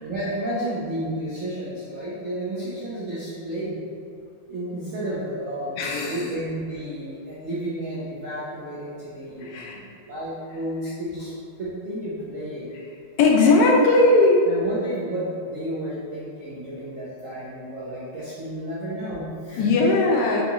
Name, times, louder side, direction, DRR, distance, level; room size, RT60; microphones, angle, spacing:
voice 1, 0.0-3.8 4.5-11.3 11.6-12.7 13.4-13.8 14.5-19.7, right 1 dB, 80° right, -9 dB, 0.7 m, -32 dB
voice 2, 5.8-6.3 9.4-9.8 13.2-14.4 19.6-20.4, left 2 dB, 75° left, -1 dB, 1.0 m, -18 dB
3.9 x 3.5 x 3.0 m, 2.4 s
omnidirectional pair, 2.3 m